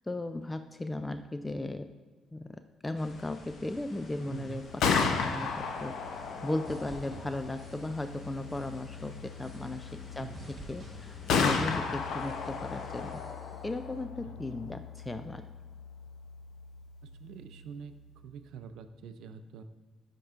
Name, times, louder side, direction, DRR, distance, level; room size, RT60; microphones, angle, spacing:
voice 1, 0.1-1.9 2.3-13.1 13.6-15.4, left 2 dB, 15° left, 9 dB, 0.3 m, -37 dB
sound 1, 3.0-13.1, left 3 dB, 55° left, 1.0 m, -50 dB
voice 2, 4.3-4.7 10.2-10.5 14.2-14.3 17.0-17.9 18.2-19.6, right 7 dB, 85° right, 10 dB, 0.4 m, -45 dB
Gunshot gunfire, 4.6-18.4, left 5 dB, 85° left, 0.7 m, -35 dB
sound 2, 6.6-8.2 8.5-9.0 9.4-10.1 10.3-11.9 12.2-12.7 13.1-13.7, right 2 dB, 30° right, 1.2 m, -52 dB
11.5 x 4.5 x 2.5 m, 1.4 s
cardioid pair, 90°, 0 cm